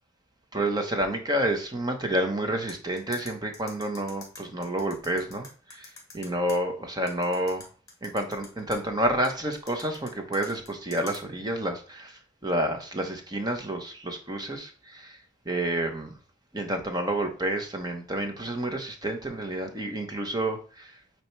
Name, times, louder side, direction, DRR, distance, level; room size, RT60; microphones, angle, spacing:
voice 1, 0.5-7.7 8.0-15.2 15.4-16.1 16.5-20.9, right 1 dB, 20° right, 4 dB, 1.1 m, -29 dB
sound 1, 2.7-6.6 7.1-8.8 9.2-11.2, left 4 dB, 20° left, 2.3 m, -45 dB
8.7 x 3.1 x 4.6 m, 0.39 s
head